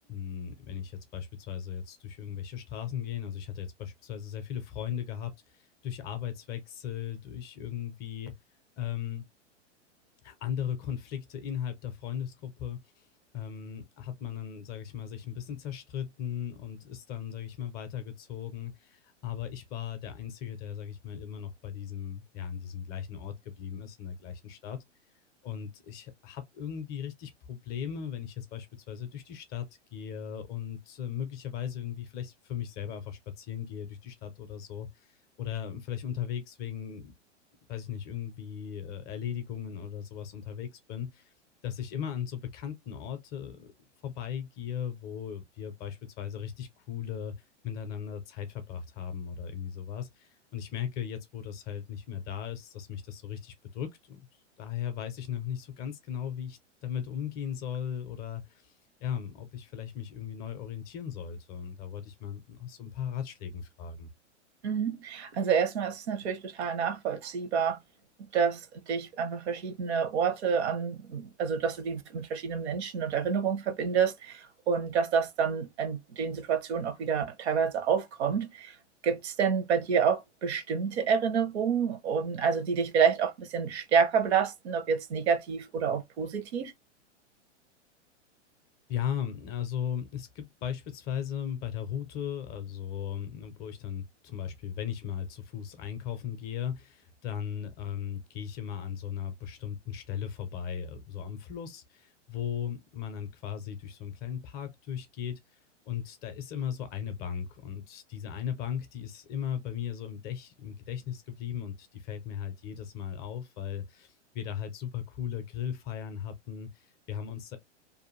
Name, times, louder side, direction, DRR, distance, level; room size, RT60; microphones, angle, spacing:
voice 1, 0.1-8.3 8.8-9.3 10.2-12.8 13.3-24.8 25.4-35.1 35.4-37.1 37.7-41.3 41.6-43.7 44.0-47.3 47.6-54.3 54.6-58.7 59.0-64.1 88.9-105.4 105.9-117.6, left 9 dB, 25° left, 0.5 m, -37 dB
voice 2, 64.6-67.8 68.3-78.7 79.0-86.7, right 6 dB, 65° right, 0.8 m, -28 dB
2.5 x 2.2 x 3.0 m
hypercardioid pair, 110°, 36 cm